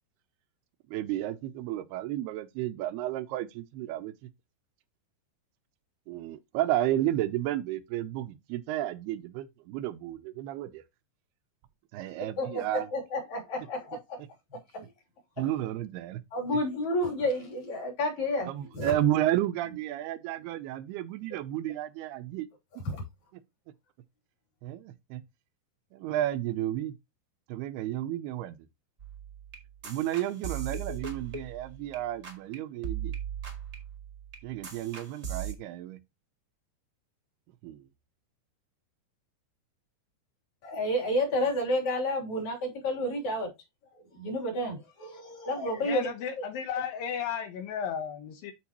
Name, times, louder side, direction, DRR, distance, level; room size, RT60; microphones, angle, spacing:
voice 1, 0.9-4.3 6.1-10.8 11.9-12.9 15.4-16.2 16.5-16.6 18.4-22.5 22.8-22.9 24.6-25.2 25.9-27.0 27.5-28.7 29.8-33.2 34.4-36.0 37.6-37.9, right 13 dB, 85° right, 2.7 m, -32 dB
voice 2, 12.4-14.2 14.7-14.9 16.3-18.9 22.9-23.0 40.6-43.5 44.1-46.1, left 1 dB, 45° left, 4.3 m, -30 dB
sound 1, 29.0-32.0 32.2-32.6 32.8-35.5, right 8 dB, 35° right, 1.2 m, -38 dB
voice 3, 45.8-48.5, left 8 dB, 70° left, 2.5 m, -34 dB
12.0 x 4.9 x 3.0 m
omnidirectional pair, 4.6 m